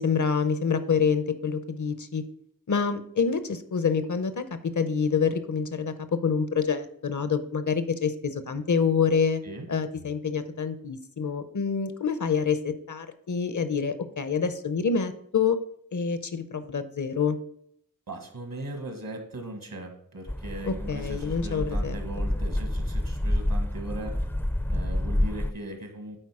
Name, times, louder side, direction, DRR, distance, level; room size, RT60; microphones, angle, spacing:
voice 1, 0.0-2.2 2.7-9.4 9.7-15.6 15.9-17.4 20.6-21.9, left 6 dB, 65° left, 11 dB, 0.7 m, -27 dB
voice 2, 18.1-24.3 24.7-26.2, right 2 dB, 80° right, 5 dB, 1.6 m, -39 dB
sound 1, 20.3-25.5, left 1 dB, 5° left, 0.4 m, -28 dB
9.0 x 4.1 x 4.8 m, 0.69 s
wide cardioid pair, 60°, 33 cm